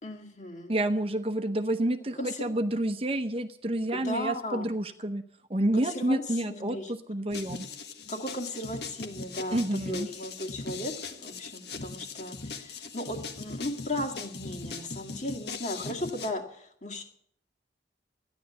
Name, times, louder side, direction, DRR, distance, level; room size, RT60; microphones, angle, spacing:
voice 1, 0.0-0.7 2.2-2.5 3.9-4.7 5.7-6.9 8.1-9.6 9.9-10.9 11.2-17.0, left 1 dB, 40° left, 1 dB, 2.2 m, -36 dB
voice 2, 0.7-5.2 5.5-7.7 9.5-10.1, right 1 dB, 30° right, 9 dB, 0.8 m, -29 dB
sound 1, 7.3-16.3, left 4 dB, 65° left, 1.5 m, -40 dB
14.0 x 10.5 x 8.1 m, 0.67 s
head